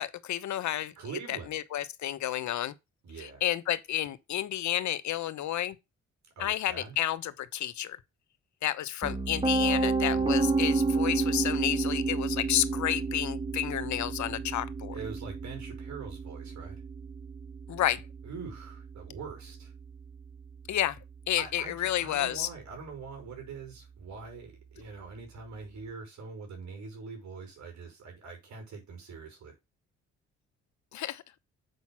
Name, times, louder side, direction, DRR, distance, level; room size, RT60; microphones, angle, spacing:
voice 1, 0.0-0.9 1.3-2.7 3.2-5.8 6.4-8.0 8.6-14.9 17.7-18.0 20.7-21.0 21.3-22.5 30.9-31.2, left 12 dB, 70° left, 0.9 m, -31 dB
voice 2, 1.0-1.6 3.0-3.4 6.4-7.0 10.1-10.4 14.9-16.8 18.2-19.7 21.4-29.5, right 5 dB, 70° right, 5.6 m, -43 dB
Piano, 9.0-20.9, right 4 dB, 15° right, 1.8 m, -31 dB
8.0 x 5.4 x 6.1 m
cardioid pair, 90°, 30 cm